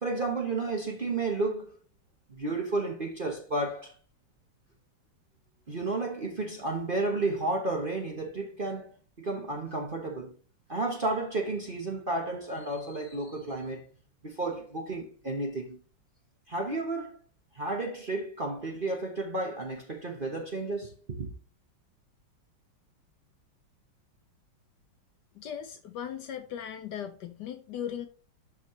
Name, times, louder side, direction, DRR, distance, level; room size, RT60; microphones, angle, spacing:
voice 1, 0.0-1.8 2.3-3.9 5.7-8.9 9.2-10.3 10.7-13.9 14.2-15.8 16.5-17.2 17.5-21.3, right 2 dB, 35° right, 0.9 m, -32 dB
voice 2, 25.3-28.1, left 9 dB, 70° left, 1.1 m, -38 dB
12.0 x 4.2 x 3.1 m
omnidirectional pair, 2.2 m